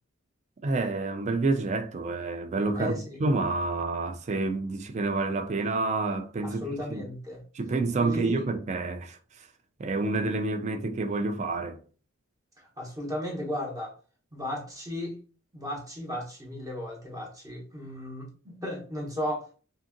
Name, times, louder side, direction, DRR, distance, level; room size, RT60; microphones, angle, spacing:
voice 1, 0.6-7.1 7.5-9.5 9.8-11.8, right 3 dB, 35° right, 0.3 m, -29 dB
voice 2, 6.4-7.4 8.0-8.5 12.8-13.9 14.3-15.2 15.5-19.5, left 1 dB, 15° right, 0.8 m, -35 dB
2.7 x 2.6 x 2.5 m
head